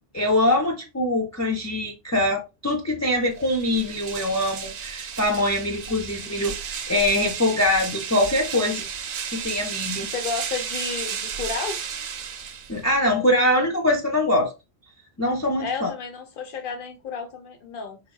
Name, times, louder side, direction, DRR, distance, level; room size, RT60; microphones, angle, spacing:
voice 1, 0.1-8.9 9.3-10.1 12.7-14.5 15.2-15.9, left 1 dB, 25° left, 0.3 m, -23 dB
sound 1, 3.3-13.0, right 7 dB, 60° right, 0.7 m, -33 dB
voice 2, 5.9-6.4 10.1-11.8 15.6-18.0, left 5 dB, 55° left, 0.9 m, -32 dB
3.6 x 3.4 x 2.2 m
omnidirectional pair, 1.1 m